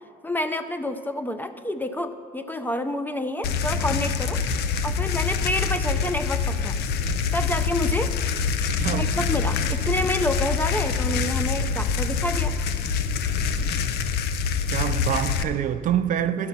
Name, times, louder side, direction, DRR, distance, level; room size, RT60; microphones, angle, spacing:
voice 1, 0.2-4.4 4.8-6.8 7.3-8.1 8.9-12.6, left 1 dB, 10° left, 0.4 m, -28 dB
sound 1, 3.4-15.4, left 5 dB, 70° left, 0.5 m, -25 dB
voice 2, 8.8-9.1 14.7-16.5, right 10 dB, 50° right, 0.4 m, -26 dB
11.0 x 5.9 x 5.6 m
cardioid pair, 110°, 17 cm